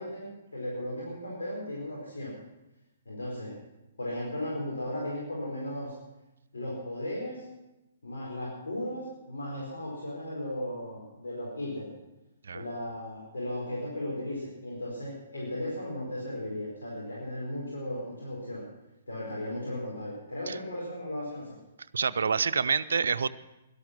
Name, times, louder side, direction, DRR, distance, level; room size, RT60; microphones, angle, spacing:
voice 1, 0.0-2.4 3.0-3.5 4.0-5.9 6.5-7.4 8.0-11.9 12.5-18.7 19.1-21.5, left 1 dB, 70° left, -4 dB, 4.8 m, -36 dB
voice 2, 21.9-23.3, right 5 dB, 65° right, 11 dB, 0.6 m, -27 dB
17.5 x 12.0 x 6.1 m, 0.97 s
figure-of-eight pair, 120°, 0 cm